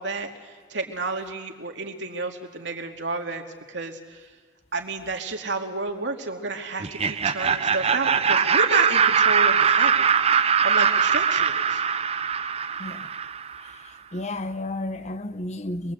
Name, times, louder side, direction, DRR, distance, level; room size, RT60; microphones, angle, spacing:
voice 1, 0.0-3.4 3.7-4.3 4.7-10.1 10.6-11.8, right 3 dB, 80° right, 2.5 m, -31 dB
Laughter, 6.8-13.6, right 6 dB, 35° right, 0.7 m, -22 dB
voice 2, 12.8-13.1 13.6-15.9, left 2 dB, 40° left, 1.0 m, -32 dB
26.0 x 22.0 x 8.1 m
head